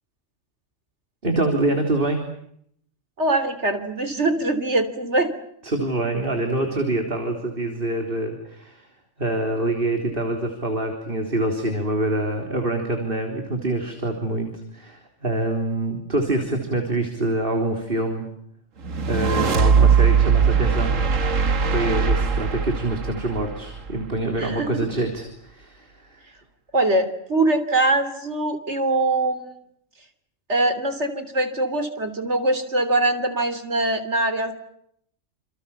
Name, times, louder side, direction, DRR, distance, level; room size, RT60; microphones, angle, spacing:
voice 1, 1.2-2.2 5.6-8.9 9.2-18.3 19.1-20.9 21.7-26.3, right 2 dB, 45° right, 4 dB, 4.0 m, -25 dB
voice 2, 3.2-5.3 24.4-24.7 26.7-29.5 30.5-34.5, right 2 dB, 60° right, 10 dB, 3.6 m, -22 dB
sound 1, 18.8-24.2, right 6 dB, 85° right, 1.9 m, -20 dB
29.0 x 28.5 x 7.2 m, 0.70 s
omnidirectional pair, 1.3 m